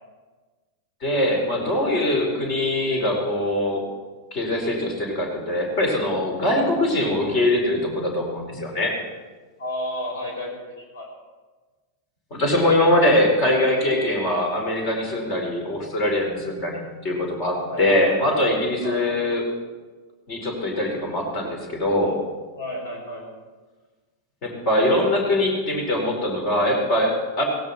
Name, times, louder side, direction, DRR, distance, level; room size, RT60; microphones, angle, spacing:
voice 1, 1.0-3.8 4.3-9.0 12.3-19.4 20.3-22.2 24.4-27.4, left 1 dB, 40° left, 1 dB, 4.7 m, -22 dB
voice 2, 9.6-11.1 17.7-18.2 18.8-19.2 22.5-23.3, left 1 dB, 60° left, 1 dB, 5.4 m, -32 dB
17.0 x 17.0 x 4.4 m, 1.3 s
figure-of-eight pair, 90°, 0 cm